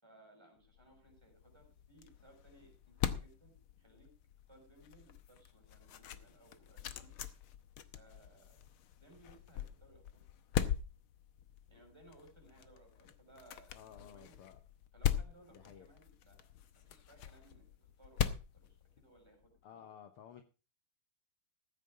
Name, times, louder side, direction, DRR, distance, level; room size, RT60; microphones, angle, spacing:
voice 1, 0.0-4.1 4.5-7.1 7.9-8.6 8.9-10.2 11.7-14.3 14.9-16.5 16.8-17.7 18.0-18.8 19.0-19.9, right 1 dB, 5° right, 2 dB, 5.7 m, -63 dB
sound 1, 0.7-19.5, left 9 dB, 90° left, 1.1 m, -42 dB
voice 2, 13.7-14.6 15.5-15.9 19.6-20.4, left 9 dB, 65° left, 7 dB, 1.4 m, -54 dB
14.5 x 9.5 x 4.9 m, 0.32 s
omnidirectional pair, 3.7 m